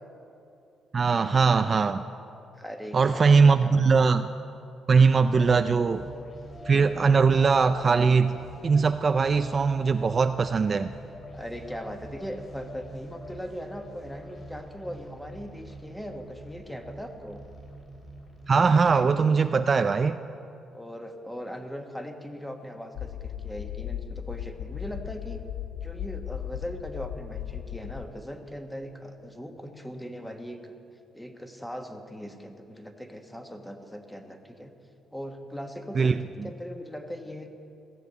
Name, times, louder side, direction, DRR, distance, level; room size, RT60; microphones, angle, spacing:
voice 1, 0.9-2.1 2.9-4.3 4.9-6.0 6.7-8.4 8.6-10.9 18.5-20.2 36.0-36.1, right 5 dB, 40° right, 10 dB, 0.4 m, -21 dB
voice 2, 2.5-3.8 5.2-5.6 9.9-10.0 11.3-17.4 20.7-25.4 25.8-30.8 31.1-34.7 35.1-37.5, equal, 5° left, 5 dB, 1.3 m, -39 dB
sound 1, 5.4-19.0, equal, 30° left, 3.5 m, -45 dB
sound 2, 23.0-28.1, left 10 dB, 85° left, 0.4 m, -36 dB
16.0 x 7.0 x 8.2 m, 2.6 s
cardioid pair, 90°, 0 cm